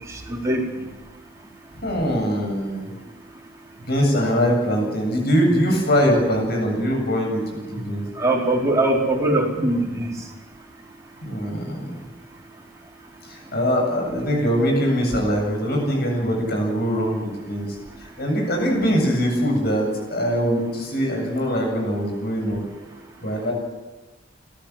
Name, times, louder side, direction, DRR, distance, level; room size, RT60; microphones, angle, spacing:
voice 1, 0.1-0.6 8.2-10.1, right 2 dB, 15° right, -3 dB, 4.5 m, -21 dB
voice 2, 1.8-2.9 3.8-8.0 11.2-12.0 13.3-17.7 18.0-22.6 23.2-23.5, equal, 55° left, 1 dB, 8.0 m, -22 dB
29.5 x 13.5 x 7.7 m, 1.2 s
head